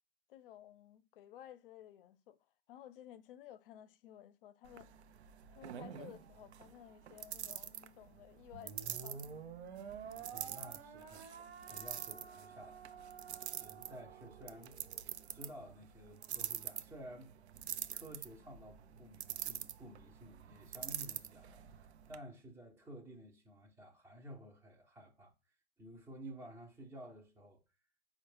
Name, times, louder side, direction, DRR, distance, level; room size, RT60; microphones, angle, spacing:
voice 1, 0.3-2.4 2.7-4.9 5.5-9.2, left 11 dB, 55° left, 0.5 m, -55 dB
sound 1, 4.6-22.2, right 10 dB, 85° right, 0.5 m, -47 dB
sound 2, 8.5-15.0, right 6 dB, 65° right, 1.3 m, -51 dB
voice 2, 10.2-15.0 15.3-17.3 17.9-25.3 25.8-27.6, equal, 10° right, 0.5 m, -53 dB
4.4 x 2.2 x 3.1 m
hypercardioid pair, 115°, 33 cm